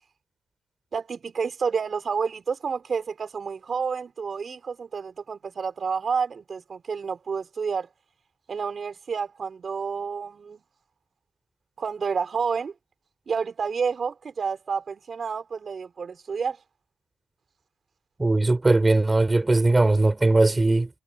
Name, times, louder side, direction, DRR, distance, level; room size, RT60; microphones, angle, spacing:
voice 1, 0.9-7.9 8.5-10.6 11.8-12.7 13.3-16.6, right 5 dB, 40° right, 4.5 m, -29 dB
voice 2, 18.2-20.9, right 2 dB, 20° right, 3.9 m, -20 dB
cardioid pair, 90°, 0 cm